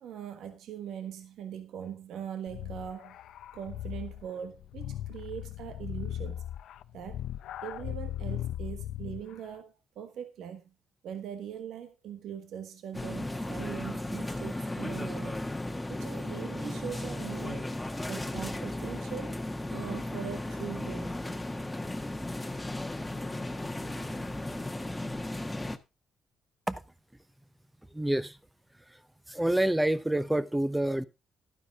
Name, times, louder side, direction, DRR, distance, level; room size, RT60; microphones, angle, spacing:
voice 1, 0.0-3.1 3.5-6.4 6.9-7.2 7.6-10.7 11.0-15.4 15.9-17.7 18.1-19.4 19.7-21.2, right 9 dB, 75° right, 1.3 m, -41 dB
sound 1, 2.5-9.3, left 12 dB, 80° left, 0.7 m, -38 dB
sound 2, 12.9-25.8, left 1 dB, 10° left, 1.3 m, -35 dB
voice 2, 27.9-28.4 29.3-31.0, right 1 dB, 5° right, 0.9 m, -27 dB
12.0 x 9.7 x 3.7 m
cardioid pair, 90°, 0 cm